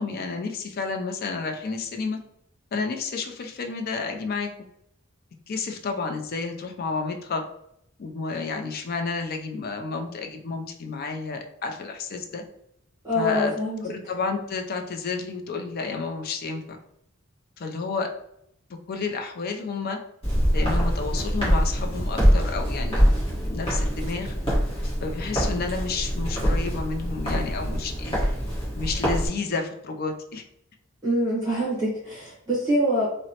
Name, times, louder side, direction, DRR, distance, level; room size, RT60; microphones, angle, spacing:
voice 1, 0.0-2.2 2.7-4.5 5.5-7.4 8.0-12.4 13.1-13.5 13.8-16.6 17.6-18.1 18.9-20.0 20.5-24.3 25.0-28.2 28.8-30.4, left 4 dB, 45° left, 4 dB, 0.4 m, -30 dB
voice 2, 13.0-13.8 31.0-33.1, equal, 20° right, -8 dB, 0.9 m, -25 dB
Walk footsteps, 20.2-29.3, equal, 25° left, 1.1 m, -24 dB
2.9 x 2.0 x 2.8 m, 0.75 s
head